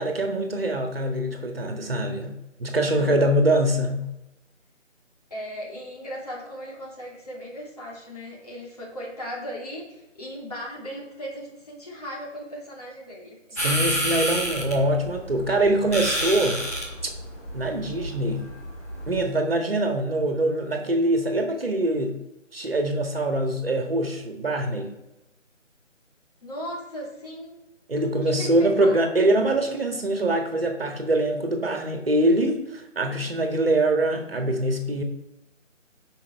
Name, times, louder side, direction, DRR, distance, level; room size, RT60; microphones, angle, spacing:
voice 1, 0.0-4.1 13.6-16.6 17.5-18.5 19.1-22.2 22.5-24.9 27.9-35.0, right 1 dB, 50° right, 4 dB, 1.8 m, -24 dB
voice 2, 2.9-3.4 5.3-13.7 26.4-27.6 28.2-29.1, equal, 30° left, -4 dB, 2.9 m, -37 dB
sound 1, 13.6-19.2, equal, 10° left, 1.7 m, -30 dB
13.5 x 5.8 x 4.7 m, 0.96 s
figure-of-eight pair, 170°, 38 cm